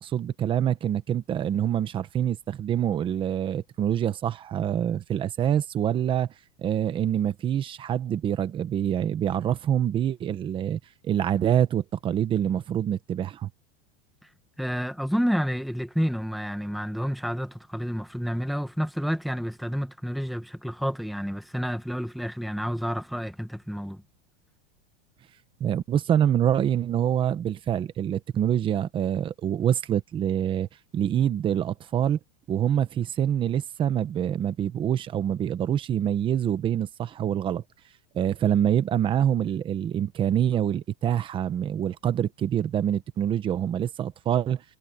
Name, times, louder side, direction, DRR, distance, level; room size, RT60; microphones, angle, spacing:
voice 1, 0.0-6.3 6.6-13.5 25.6-30.7 30.9-32.2 32.5-37.6 38.1-44.6, right 10 dB, 15° right, 0.9 m, -26 dB
voice 2, 14.6-24.0, equal, ahead, 1.4 m, -29 dB
supercardioid pair, 175°, 29 cm